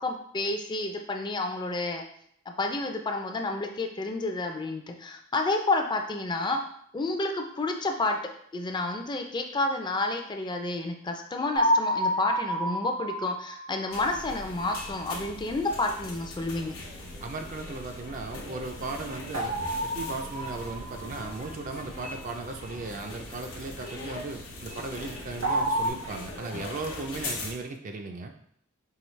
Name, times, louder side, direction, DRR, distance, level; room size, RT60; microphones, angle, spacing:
voice 1, 0.0-2.0 2.6-6.6 6.9-8.2 8.5-16.7, left 2 dB, 20° left, 4 dB, 0.4 m, -30 dB
sound 1, 11.5-14.5 19.3-21.5 25.4-25.9, equal, 80° right, 1.4 m, -29 dB
sound 2, 13.9-27.5, left 2 dB, 85° left, 0.9 m, -40 dB
voice 2, 17.2-28.3, right 3 dB, 40° right, 4 dB, 0.4 m, -37 dB
4.7 x 2.8 x 3.1 m, 0.68 s
head